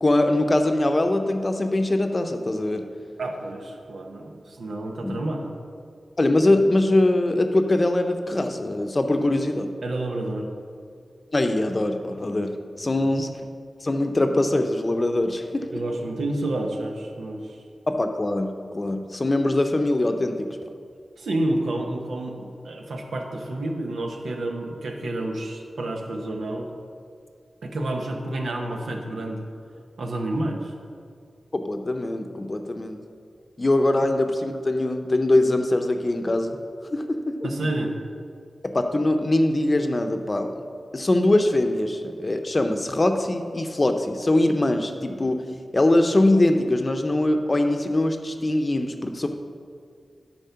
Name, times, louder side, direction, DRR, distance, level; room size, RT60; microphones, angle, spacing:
voice 1, 0.0-2.9 5.0-5.2 6.2-9.7 11.3-13.3 13.8-15.7 17.9-20.6 31.5-33.0 33.6-36.6 36.9-37.5 38.6-40.6 40.9-45.4 45.7-49.3, left 1 dB, 40° left, 6 dB, 0.7 m, -22 dB
voice 2, 3.2-5.5 9.8-10.5 12.9-13.1 15.7-17.6 21.2-26.7 27.6-29.4 30.0-30.7 37.4-37.9, right 1 dB, 85° right, 2 dB, 0.9 m, -29 dB
9.2 x 4.4 x 5.7 m, 2.2 s
cardioid pair, 55°, 0 cm